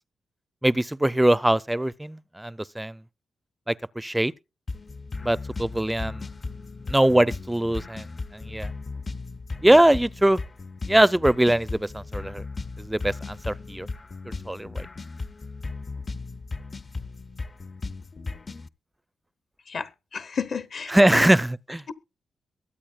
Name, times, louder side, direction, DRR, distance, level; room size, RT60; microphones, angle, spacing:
voice 1, 0.6-3.0 3.7-4.3 5.2-6.3 6.9-8.1 8.3-8.7 9.6-10.4 10.9-12.4 12.8-13.9 14.5-14.9 20.9-21.8, right 1 dB, 10° right, 0.4 m, -22 dB
sound 1, 4.7-18.7, left 3 dB, 40° left, 0.6 m, -36 dB
voice 2, 19.7-21.3 21.9-22.0, left 6 dB, 60° left, 1.0 m, -32 dB
22.5 x 8.4 x 2.3 m
cardioid pair, 75°, 0 cm